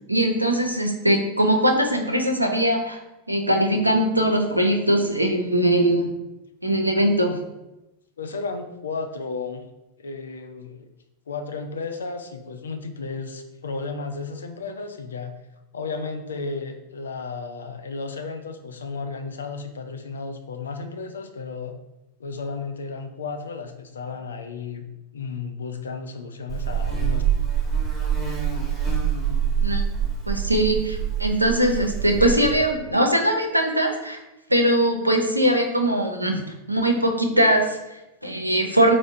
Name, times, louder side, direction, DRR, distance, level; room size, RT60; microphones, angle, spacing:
voice 1, 0.1-3.0 3.3-6.1 6.6-7.4 29.6-29.8 30.3-34.2 34.5-36.4 36.7-39.0, right 1 dB, 85° right, 3 dB, 0.5 m, -21 dB
voice 2, 8.2-9.6 10.0-10.9 11.3-15.3 15.7-21.7 22.2-24.8 25.1-27.2, left 4 dB, 70° left, 7 dB, 0.4 m, -33 dB
Buzz, 26.5-32.7, right 8 dB, 10° right, 1.0 m, -25 dB
4.4 x 2.0 x 3.6 m, 0.96 s
figure-of-eight pair, 90°, 0 cm